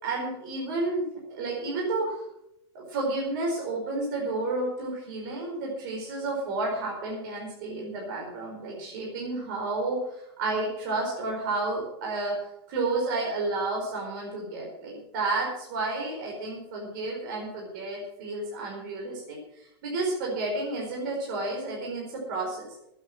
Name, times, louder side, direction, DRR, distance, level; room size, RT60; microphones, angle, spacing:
voice 1, 0.0-2.2 2.7-12.4 12.7-22.7, right 2 dB, 50° right, -2 dB, 4.9 m, -31 dB
13.5 x 8.9 x 7.8 m, 0.80 s
supercardioid pair, 175°, 13 cm